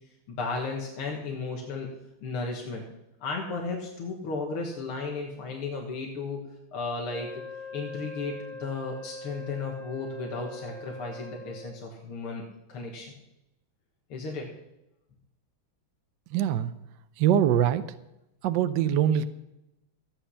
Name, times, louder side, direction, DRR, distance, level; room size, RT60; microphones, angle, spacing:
voice 1, 0.3-1.9 2.2-2.8 3.2-7.4 7.7-12.4 12.7-13.1 14.1-14.5, left 3 dB, 90° left, 0 dB, 2.4 m, -34 dB
Wind instrument woodwind instrument, 7.0-11.8, left 2 dB, 20° left, 5.5 m, -42 dB
voice 2, 16.3-16.7 17.2-17.9 18.4-19.2, right 10 dB, 70° right, 11 dB, 1.2 m, -23 dB
14.5 x 9.0 x 5.6 m, 0.90 s
omnidirectional pair, 2.3 m